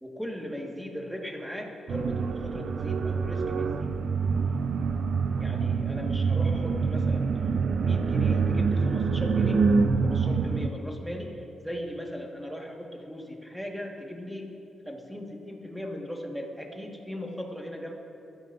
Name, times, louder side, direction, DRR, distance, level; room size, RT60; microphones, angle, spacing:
voice 1, 0.0-4.0 5.4-7.3 7.8-9.7 10.0-14.6 14.9-17.9, equal, 5° right, 0 dB, 1.7 m, -38 dB
sound 1, 1.9-10.7, right 5 dB, 65° right, 0.6 m, -26 dB
22.0 x 13.5 x 2.6 m, 2.7 s
cardioid pair, 105°, 0 cm